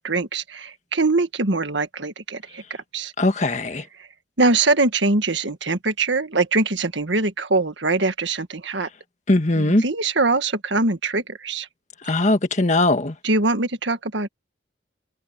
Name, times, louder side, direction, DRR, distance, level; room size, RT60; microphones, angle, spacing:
voice 1, 0.0-3.1 4.4-8.9 9.6-11.7 12.1-12.2 13.2-14.3, right 3 dB, 80° right, 1.8 m, -23 dB
voice 2, 3.2-3.8 9.3-9.8 12.1-13.1, left 2 dB, 40° left, 1.7 m, -20 dB
head